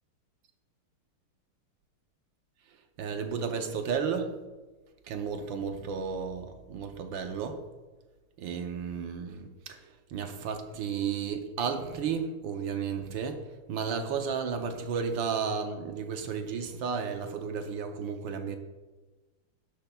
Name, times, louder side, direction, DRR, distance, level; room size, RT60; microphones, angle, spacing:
voice 1, 3.0-4.3 5.1-7.6 8.4-18.6, right 6 dB, 70° right, 6 dB, 1.4 m, -33 dB
12.5 x 10.0 x 2.3 m, 1.2 s
omnidirectional pair, 2.4 m